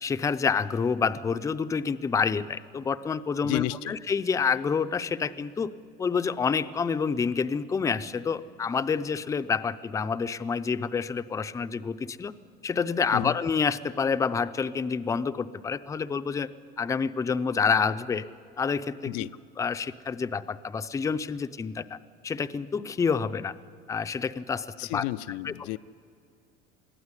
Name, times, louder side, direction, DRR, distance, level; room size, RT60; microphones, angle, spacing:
voice 1, 0.0-5.7 6.0-12.3 12.6-16.5 16.8-18.2 18.6-19.3 19.6-22.0 22.2-23.5 23.9-25.0 25.4-25.8, left 5 dB, 15° left, 11 dB, 0.5 m, -28 dB
voice 2, 3.4-4.0 13.1-13.4 19.0-19.3 24.8-25.8, left 17 dB, 80° left, 13 dB, 0.5 m, -32 dB
22.0 x 15.0 x 9.8 m, 2.2 s
cardioid pair, 135°, 21 cm